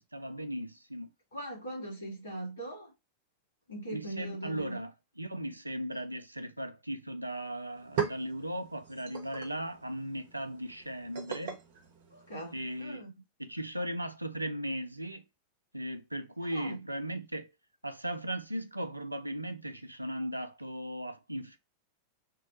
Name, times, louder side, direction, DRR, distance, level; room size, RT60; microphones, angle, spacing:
voice 1, 0.1-1.1 3.9-4.9 5.2-11.6 12.5-13.0 13.4-15.2 15.7-17.5 17.8-21.6, right 1 dB, 85° right, 0.4 m, -37 dB
voice 2, 1.3-2.9 3.7-4.8 12.1-13.1 16.5-16.8, right 1 dB, 70° left, 1.6 m, -40 dB
sound 1, 7.3-7.4 7.6-12.8, right 7 dB, 55° right, 0.8 m, -40 dB
3.6 x 2.2 x 2.9 m
figure-of-eight pair, 90°, 0 cm